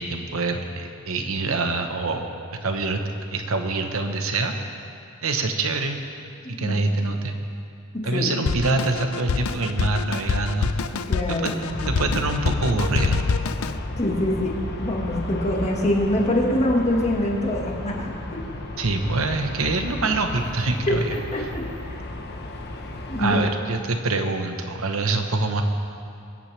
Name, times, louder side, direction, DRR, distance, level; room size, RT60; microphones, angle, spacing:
voice 1, 0.0-2.3 2.6-3.0 3.3-4.5 5.2-6.0 6.5-7.4 8.0-10.7 11.3-11.5 11.9-13.2 18.8-21.5 23.2-25.6, right 3 dB, 75° right, 5 dB, 1.1 m, -25 dB
voice 2, 7.9-8.3 11.1-11.7 14.0-14.5 14.8-18.4 21.3-21.6 23.1-23.5, left 1 dB, 30° left, -1 dB, 1.7 m, -24 dB
Drum kit, 8.5-13.8, left 5 dB, 80° left, 0.5 m, -26 dB
Aircraft, 11.7-23.3, left 1 dB, 50° left, 1.1 m, -33 dB
25.5 x 8.8 x 3.4 m, 2.6 s
head